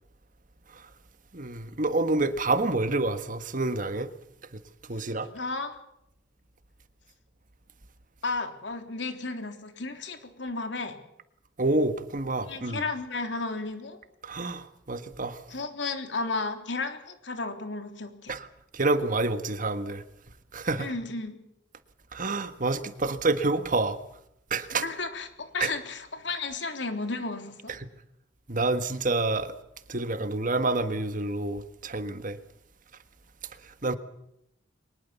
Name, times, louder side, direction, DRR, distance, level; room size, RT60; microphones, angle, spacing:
voice 1, 1.3-4.1 4.9-5.3 11.6-12.8 14.2-15.4 18.3-18.5 18.7-20.0 20.5-20.9 22.1-24.0 24.5-24.8 25.6-25.7 28.5-29.5 29.9-32.4 33.8-34.0, right 2 dB, 45° right, 1.5 m, -28 dB
voice 2, 5.2-5.8 8.2-11.0 12.5-14.0 15.5-18.3 20.8-21.4 24.7-27.8, left 3 dB, 75° left, 3.5 m, -33 dB
23.5 x 20.5 x 7.0 m
head